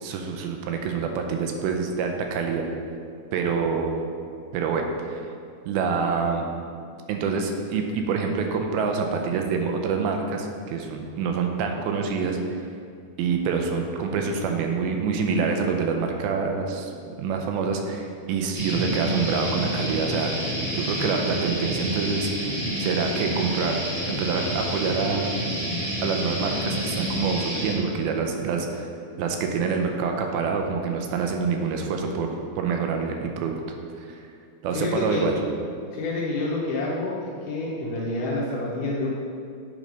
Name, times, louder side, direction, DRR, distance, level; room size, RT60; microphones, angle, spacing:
voice 1, 0.0-2.7 3.3-4.0 4.5-5.2 5.7-6.5 7.1-12.4 13.2-16.9 17.2-20.3 20.7-22.5 22.8-23.8 24.1-25.4 26.0-28.9 29.2-32.3 32.6-33.6 34.0-34.2 34.6-35.4, right 5 dB, 80° right, 3 dB, 2.4 m, -26 dB
sound 1, 18.5-27.7, equal, 60° right, 1.5 m, -29 dB
voice 2, 34.7-35.2 35.9-37.1 37.5-39.1, left 2 dB, 75° left, -5 dB, 2.1 m, -28 dB
8.9 x 3.2 x 5.0 m, 2.3 s
omnidirectional pair, 4.4 m